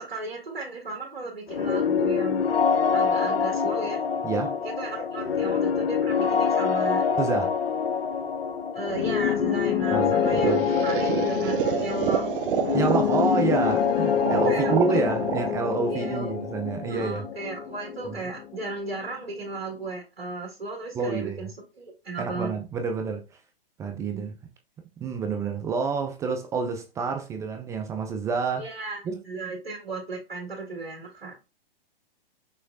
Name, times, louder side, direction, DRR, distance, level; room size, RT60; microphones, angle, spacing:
voice 1, 0.0-2.4 2.9-4.0 4.6-7.0 8.7-12.2 14.4-15.0 15.9-16.3 16.9-21.5 21.8-22.5 24.1-24.3 28.5-29.0 29.3-31.3, right 3 dB, 85° right, 2.0 m, -35 dB
sound 1, 1.5-19.1, left 7 dB, 85° left, 0.7 m, -26 dB
voice 2, 7.2-7.5 9.9-10.6 12.7-17.3 18.1-18.2 20.9-21.4 22.2-23.2 23.8-24.3 25.0-28.7 29.0-29.1, right 5 dB, 10° right, 0.3 m, -28 dB
sound 2, 10.0-16.9, right 9 dB, 65° right, 0.6 m, -29 dB
6.0 x 3.1 x 2.6 m
hypercardioid pair, 120°, 29 cm